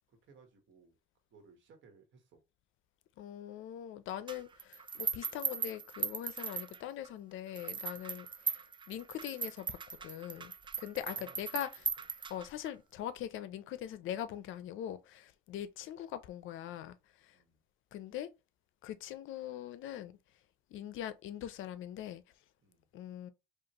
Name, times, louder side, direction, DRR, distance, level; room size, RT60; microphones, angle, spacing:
voice 1, 0.1-1.0 1.3-2.4 6.5-6.6 8.0-8.1 10.9-11.9 17.3-17.6 22.6-22.9, right 4 dB, 75° right, 1.4 m, -61 dB
voice 2, 3.2-8.6 8.9-10.5 10.8-11.9 12.3-16.9 17.2-17.4 17.9-18.3 18.8-20.2 20.7-22.2 22.9-23.3, left 11 dB, 80° left, 0.5 m, -42 dB
sound 1, 4.3-7.1 7.6-12.7, right 6 dB, 25° right, 0.3 m, -39 dB
4.9 x 2.4 x 2.9 m
cardioid pair, 90°, 20 cm